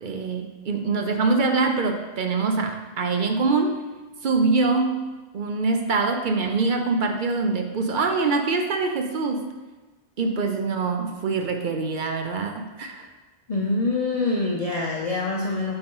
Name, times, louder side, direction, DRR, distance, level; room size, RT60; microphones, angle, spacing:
voice 1, 0.0-3.8 4.2-5.0 5.3-9.5 10.2-13.1, right 4 dB, 55° right, 5 dB, 0.7 m, -24 dB
voice 2, 13.5-15.7, left 3 dB, 40° left, -2 dB, 0.6 m, -25 dB
7.4 x 4.4 x 3.8 m, 1.2 s
omnidirectional pair, 1.1 m